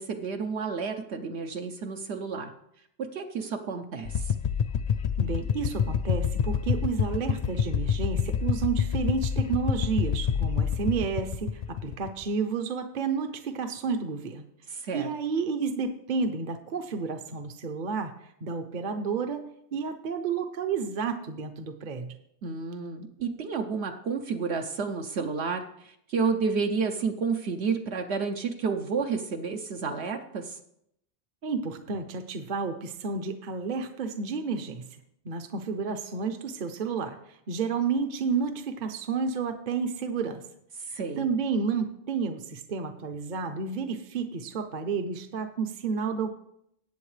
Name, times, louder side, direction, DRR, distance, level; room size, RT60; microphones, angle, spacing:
voice 1, 0.0-2.5 3.0-4.3 14.8-15.1 22.4-30.6 40.9-41.3, right 5 dB, 75° right, 4 dB, 1.1 m, -31 dB
sound 1, 4.0-12.2, left 7 dB, 55° left, 0.4 m, -27 dB
voice 2, 5.2-14.4 14.9-18.1 18.4-22.2 31.4-34.9 35.2-40.4 40.9-46.4, right 5 dB, 50° right, 7 dB, 0.8 m, -31 dB
18.0 x 7.8 x 3.3 m, 0.75 s
omnidirectional pair, 1.1 m